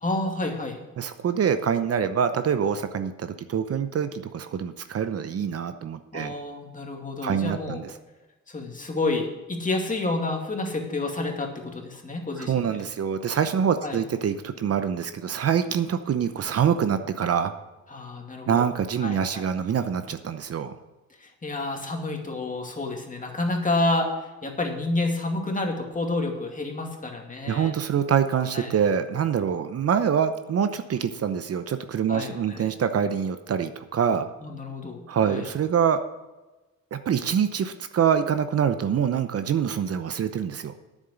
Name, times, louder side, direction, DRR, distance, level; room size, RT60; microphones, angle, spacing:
voice 1, 0.0-0.8 6.1-7.8 8.5-12.8 13.8-14.0 17.9-18.7 19.0-19.4 21.2-27.7 28.5-28.7 32.1-32.7 34.4-35.4, left 2 dB, 25° left, 2 dB, 2.3 m, -29 dB
voice 2, 1.0-6.3 7.2-7.9 12.4-17.5 18.5-20.7 27.5-34.3 35.1-36.0 36.9-40.7, right 7 dB, 55° right, 10 dB, 0.8 m, -25 dB
9.1 x 7.4 x 8.1 m, 1.1 s
cardioid pair, 90°, 29 cm